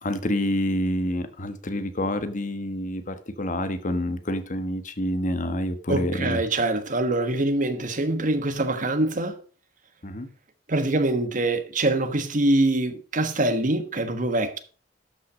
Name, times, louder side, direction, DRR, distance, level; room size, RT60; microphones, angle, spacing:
voice 1, 0.0-6.4 10.0-10.3, left 1 dB, 45° left, 1.3 m, -27 dB
voice 2, 5.9-9.4 10.7-14.6, right 2 dB, 45° right, 1.2 m, -24 dB
12.5 x 5.8 x 4.9 m
head